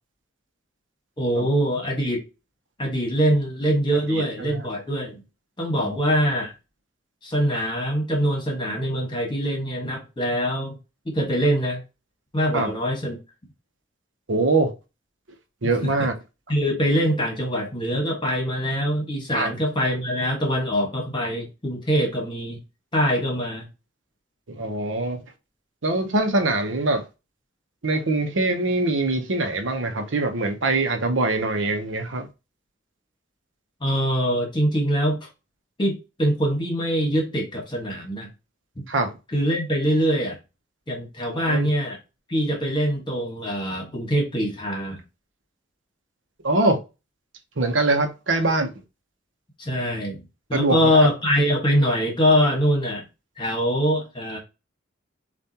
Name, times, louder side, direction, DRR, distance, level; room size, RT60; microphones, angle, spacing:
voice 1, 1.2-2.2 2.8-5.2 5.6-6.5 7.2-10.8 11.0-11.8 12.3-13.2 15.8-15.9 16.5-22.6 22.9-23.7 33.8-35.3 35.8-38.3 39.3-40.4 40.9-42.0 42.3-45.0 49.6-50.2 50.5-53.0 53.4-54.4, equal, 25° left, 1.5 m, -23 dB
voice 2, 4.1-4.7 5.8-6.0 12.5-12.7 14.3-14.7 15.6-16.1 19.3-19.5 24.5-25.2 25.8-27.0 27.8-32.3 38.9-39.1 41.3-41.7 46.4-46.8 47.6-48.7 50.5-51.1, right 2 dB, 75° right, 0.9 m, -23 dB
6.9 x 2.5 x 2.9 m
head